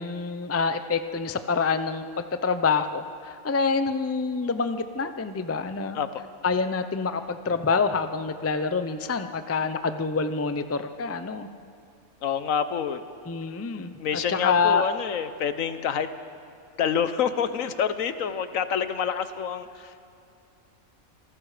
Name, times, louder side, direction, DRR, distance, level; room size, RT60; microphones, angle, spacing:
voice 1, 0.0-6.0 6.4-11.5 13.3-14.0 14.3-14.9, left 5 dB, 20° left, 10 dB, 0.4 m, -26 dB
voice 2, 12.2-13.0 14.0-16.1 16.8-20.0, left 7 dB, 75° left, 11 dB, 1.3 m, -27 dB
27.5 x 19.0 x 5.0 m, 2.7 s
omnidirectional pair, 1.4 m